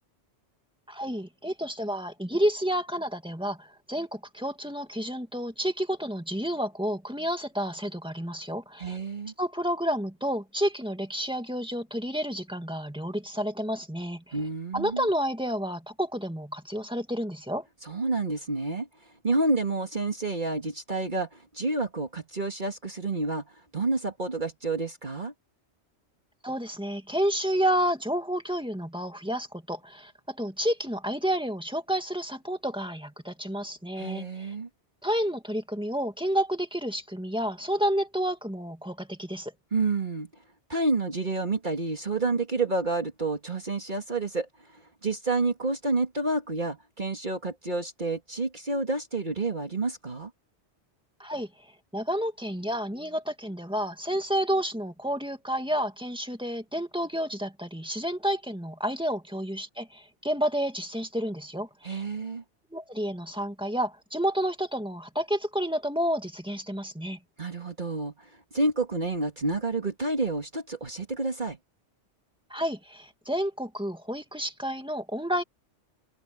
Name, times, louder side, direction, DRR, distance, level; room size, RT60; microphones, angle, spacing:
voice 1, 0.9-9.0 9.4-14.4 14.7-17.7 26.4-34.5 35.0-39.5 51.2-51.5 51.9-62.0 62.7-67.2 72.5-75.4, equal, 5° right, 2.2 m, -30 dB
voice 2, 8.8-9.3 14.3-15.1 17.8-18.9 19.2-23.5 23.7-25.3 34.0-34.7 39.7-40.3 40.7-50.3 61.8-62.4 67.4-71.6, right 3 dB, 40° right, 2.1 m, -29 dB
omnidirectional pair, 1.2 m